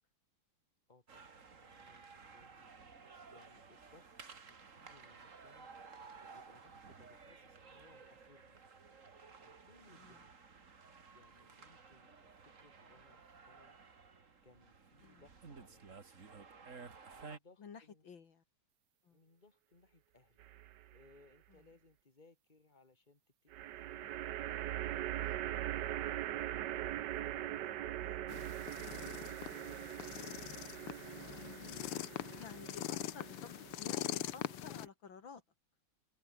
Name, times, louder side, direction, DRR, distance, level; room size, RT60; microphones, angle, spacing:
voice 1, 0.9-2.8 3.3-8.6 9.4-10.3 10.8-16.0 17.1-18.1 19.1-26.7 27.1-31.7, left 3 dB, 20° left, 3.2 m, -66 dB
sound 1, 1.1-17.4, right 5 dB, 35° right, 2.3 m, -55 dB
voice 2, 17.6-18.4 19.0-19.2 21.5-21.6 28.0-28.2 32.3-33.5 33.8-35.4, left 6 dB, 65° left, 2.7 m, -53 dB
sound 2, 20.4-21.0 23.5-34.9, right 13 dB, 65° right, 1.2 m, -42 dB
sound 3, 28.3-34.9, left 14 dB, 90° left, 1.8 m, -43 dB
omnidirectional pair, 2.4 m